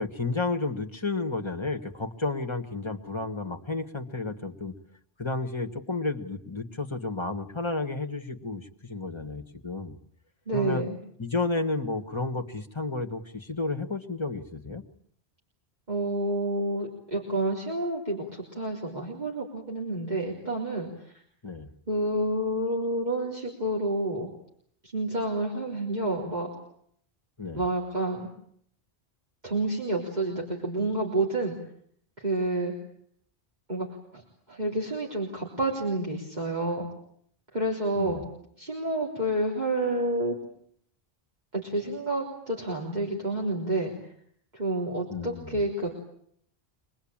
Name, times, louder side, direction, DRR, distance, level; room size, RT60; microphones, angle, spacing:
voice 1, 0.0-4.7 5.2-9.9 10.5-10.8 11.2-14.8 21.4-21.7 27.4-27.6 38.0-38.2 45.1-45.6, left 3 dB, 25° left, 6 dB, 1.7 m, -32 dB
voice 2, 10.5-11.0 15.9-20.9 21.9-24.3 24.8-26.5 27.5-28.3 29.4-31.6 32.2-32.7 33.7-33.9 34.1-34.2 34.5-36.9 37.5-38.2 38.6-40.4 41.5-43.9 44.5-45.9, right 1 dB, 45° right, -2 dB, 4.0 m, -29 dB
25.5 x 21.0 x 8.9 m, 0.67 s
omnidirectional pair, 1.1 m